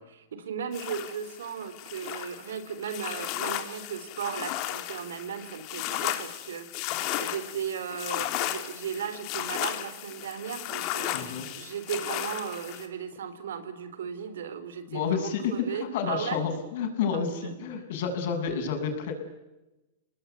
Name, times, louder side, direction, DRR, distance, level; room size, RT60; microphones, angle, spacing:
voice 1, 0.0-16.4 17.1-17.5, right 7 dB, 85° right, 12 dB, 4.1 m, -36 dB
sound 1, 0.7-12.9, left 14 dB, 50° left, 3.4 m, -35 dB
voice 2, 11.1-11.5 14.9-19.1, left 6 dB, 65° left, 5 dB, 7.4 m, -30 dB
27.0 x 20.0 x 9.5 m, 1.0 s
hypercardioid pair, 125°, 0 cm